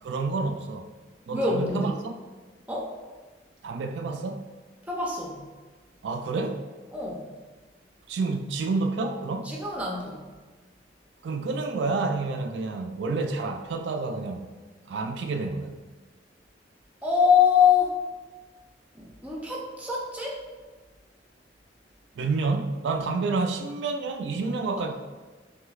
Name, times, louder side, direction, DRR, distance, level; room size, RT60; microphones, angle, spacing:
voice 1, 0.0-0.9 1.3-2.1 3.6-4.5 6.0-6.6 8.1-9.6 11.2-14.5 14.9-15.8 22.2-24.9, right 3 dB, 70° right, 5 dB, 0.3 m, -29 dB
voice 2, 1.3-1.9 2.7-2.9 4.9-5.4 6.9-7.3 9.5-10.2 17.0-18.0 18.9-20.4, left 6 dB, 10° right, -2 dB, 0.5 m, -24 dB
5.9 x 2.7 x 2.4 m, 1.3 s
head